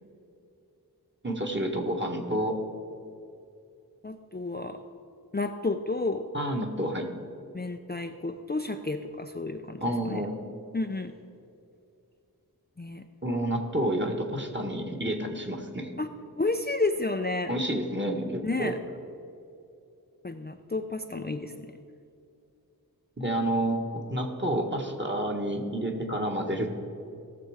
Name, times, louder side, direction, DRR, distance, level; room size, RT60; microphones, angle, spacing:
voice 1, 1.2-2.6 6.3-7.1 9.8-10.3 13.2-15.9 17.5-18.8 23.2-26.7, right 1 dB, 30° right, 1 dB, 1.6 m, -29 dB
voice 2, 4.0-4.8 5.3-6.3 7.5-9.8 10.1-10.2 10.7-11.1 12.8-13.1 16.0-16.1 16.4-17.5 18.4-18.8 20.2-21.8, left 3 dB, 25° left, 6 dB, 0.5 m, -31 dB
17.5 x 6.9 x 5.0 m, 2.6 s
wide cardioid pair, 45°, 37 cm